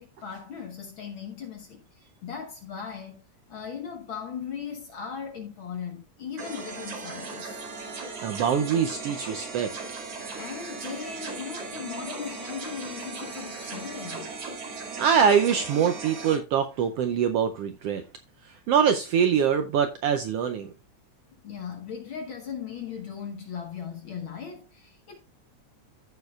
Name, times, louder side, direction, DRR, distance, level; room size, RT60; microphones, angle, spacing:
voice 1, 0.0-7.6 10.4-14.3 21.4-25.2, left 7 dB, 55° left, 1.5 m, -38 dB
sound 1, 6.4-16.4, right 4 dB, 55° right, 3.1 m, -37 dB
voice 2, 8.2-9.7 15.0-18.0 18.7-20.7, right 7 dB, 75° right, 1.4 m, -24 dB
14.5 x 6.5 x 2.4 m
omnidirectional pair, 3.3 m